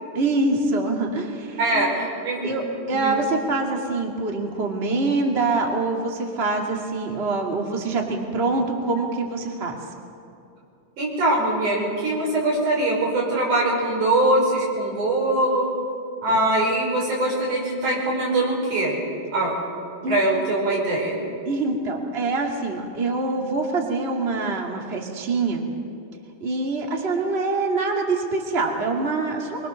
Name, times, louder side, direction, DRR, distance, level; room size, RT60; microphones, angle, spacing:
voice 1, 0.1-2.1 2.4-9.8 16.3-16.4 20.0-20.2 21.5-25.7 26.4-29.7, right 3 dB, 20° right, 1 dB, 2.2 m, -25 dB
voice 2, 1.6-2.6 2.9-3.2 11.0-15.7 16.2-19.0 19.3-19.5 20.1-21.2, right 1 dB, 80° right, -4 dB, 6.8 m, -22 dB
24.5 x 23.0 x 6.5 m, 2.7 s
omnidirectional pair, 3.5 m